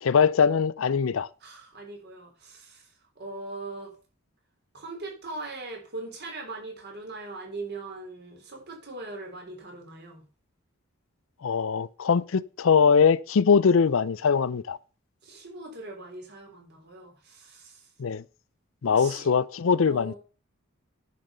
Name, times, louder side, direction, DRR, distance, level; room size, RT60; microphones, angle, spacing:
voice 1, 0.0-1.3 11.4-14.8 18.0-18.2 18.8-20.1, left 6 dB, 65° left, 0.5 m, -22 dB
voice 2, 1.4-2.9 3.2-3.9 4.7-10.3 15.2-17.9 18.9-19.3 19.9-20.2, right 2 dB, 50° right, 3.8 m, -40 dB
10.5 x 5.7 x 6.8 m
head